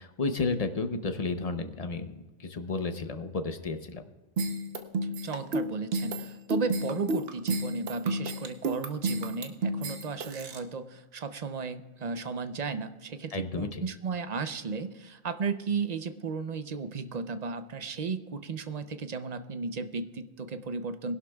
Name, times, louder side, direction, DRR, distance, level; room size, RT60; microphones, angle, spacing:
voice 1, 0.0-2.1 2.4-4.0 13.3-13.8, left 3 dB, 40° left, 8 dB, 0.8 m, -32 dB
sound 1, 4.4-10.6, right 2 dB, 60° right, 1.1 m, -31 dB
voice 2, 5.2-21.2, right 4 dB, 45° right, 10 dB, 0.7 m, -34 dB
22.0 x 11.5 x 2.3 m, 1.2 s
omnidirectional pair, 1.1 m